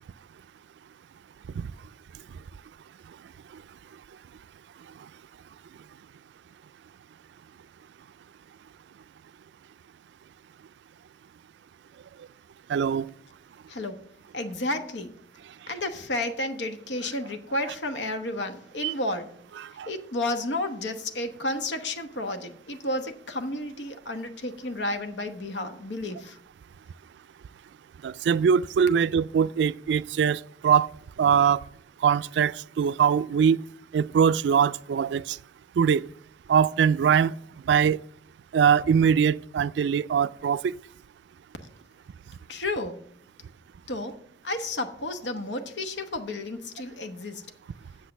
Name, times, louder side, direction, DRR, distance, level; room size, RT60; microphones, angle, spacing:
voice 1, 12.7-13.1 18.8-18.9 19.8-19.9 28.0-30.9 31.2-31.6 32.0-33.6 33.9-35.4 35.8-36.0 36.5-37.3 37.7-38.0 38.5-40.7, right 7 dB, 75° right, 0.3 m, -22 dB
voice 2, 13.7-14.0 14.3-15.1 15.7-19.3 19.9-26.4 42.5-43.0 43.9-47.5, left 1 dB, 85° left, 1.1 m, -32 dB
8.2 x 6.5 x 6.6 m
head